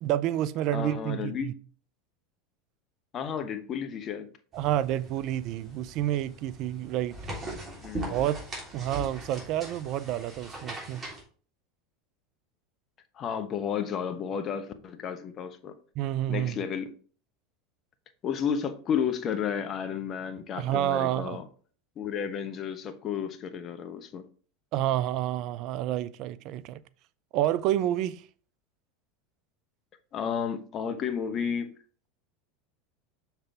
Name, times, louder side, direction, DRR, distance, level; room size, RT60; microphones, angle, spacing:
voice 1, 0.0-1.5 4.5-7.2 8.1-8.4 8.7-11.0 16.0-16.6 20.6-21.4 24.7-26.8 27.3-28.2, right 12 dB, 55° right, 0.5 m, -29 dB
voice 2, 0.7-1.5 3.1-4.3 7.8-8.1 13.1-15.8 16.3-16.9 18.2-21.5 22.0-24.2 30.1-31.7, left 7 dB, 40° left, 1.0 m, -32 dB
sound 1, 4.5-11.2, right 1 dB, 25° right, 3.3 m, -40 dB
6.6 x 5.8 x 3.4 m
hypercardioid pair, 90°, 0 cm